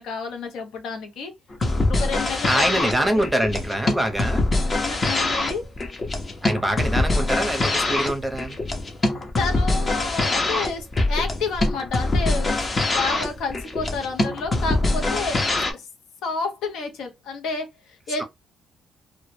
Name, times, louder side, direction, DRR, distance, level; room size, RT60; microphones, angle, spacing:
voice 1, 0.0-1.3 1.9-3.2 4.8-5.7 9.4-12.6 12.9-15.4 15.7-15.9 16.2-18.2, left 4 dB, 85° left, 0.6 m, -30 dB
sound 1, 1.5-15.7, left 2 dB, 35° left, 0.6 m, -23 dB
voice 2, 2.5-4.4 6.4-8.6, right 1 dB, 10° right, 0.7 m, -24 dB
2.1 x 2.0 x 3.1 m
cardioid pair, 90°, 0 cm